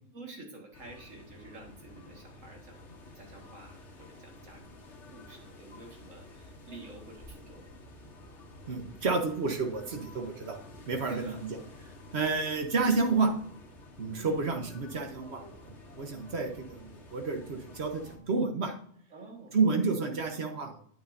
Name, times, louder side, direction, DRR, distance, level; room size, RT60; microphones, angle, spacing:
voice 1, 0.1-2.9 3.2-4.8 5.1-7.7 11.0-11.4 14.2-14.4 19.1-19.6, right 2 dB, 75° right, 1 dB, 2.3 m, -49 dB
sound 1, 0.7-18.2, left 1 dB, 65° left, 1.6 m, -51 dB
voice 2, 8.7-10.6 10.9-11.5 12.1-13.3 14.0-18.8 19.5-20.8, right 4 dB, 55° right, 4 dB, 1.4 m, -30 dB
9.1 x 8.6 x 2.7 m, 0.64 s
omnidirectional pair, 1.3 m